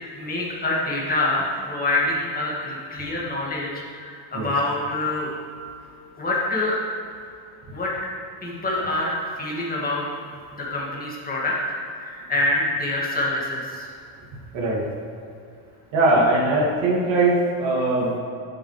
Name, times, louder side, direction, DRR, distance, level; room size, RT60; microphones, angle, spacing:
voice 1, 0.2-5.3 6.2-6.8 7.7-7.9 8.4-10.0 10.6-13.9, left 2 dB, 15° left, -5 dB, 2.1 m, -26 dB
voice 2, 15.9-18.1, right 2 dB, 65° right, -4 dB, 2.5 m, -20 dB
12.5 x 7.8 x 3.3 m, 2.5 s
cardioid pair, 135°, 50 cm